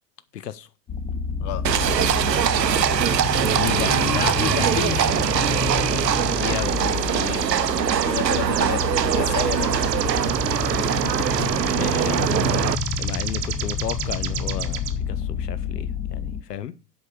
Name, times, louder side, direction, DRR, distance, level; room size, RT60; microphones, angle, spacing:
voice 1, 0.3-0.7 3.5-3.9 6.4-7.5 11.8-12.3 13.0-14.8 15.1-16.7, left 10 dB, 75° left, 0.7 m, -32 dB
sound 1, 0.9-16.4, left 5 dB, 15° left, 0.7 m, -29 dB
Livestock farm animals working animals, 1.6-12.7, right 9 dB, 90° right, 0.6 m, -23 dB
sound 2, 2.0-2.3 2.6-14.9, right 12 dB, 35° right, 1.0 m, -32 dB
voice 2, 3.9-5.2 8.0-8.9 9.1-9.9 10.8-11.5, left 12 dB, 40° left, 1.0 m, -31 dB
8.0 x 5.4 x 7.7 m
figure-of-eight pair, 85°, 48 cm